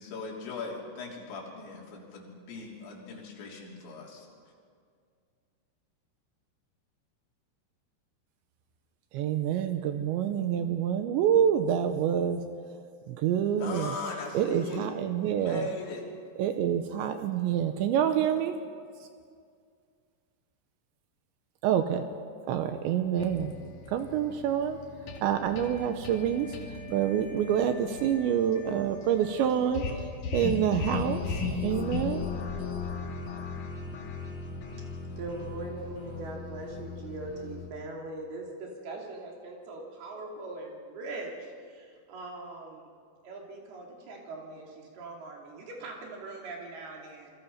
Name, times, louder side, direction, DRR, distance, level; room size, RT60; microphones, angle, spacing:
voice 1, 0.0-4.3 13.6-14.9 15.2-16.1, left 3 dB, 70° left, -3 dB, 5.8 m, -39 dB
voice 2, 9.1-12.4 13.1-13.9 14.3-15.7 16.4-18.5 21.6-22.1 22.5-23.6 23.9-24.8 25.2-26.5 26.9-29.9 30.3-32.2, right 9 dB, 80° right, 8 dB, 3.0 m, -27 dB
sound 1, 23.2-37.7, left 4 dB, 50° left, 3.1 m, -37 dB
voice 3, 35.2-43.0 43.2-47.3, right 2 dB, 55° right, -1 dB, 4.7 m, -41 dB
27.5 x 23.0 x 5.7 m, 2.2 s
omnidirectional pair, 5.4 m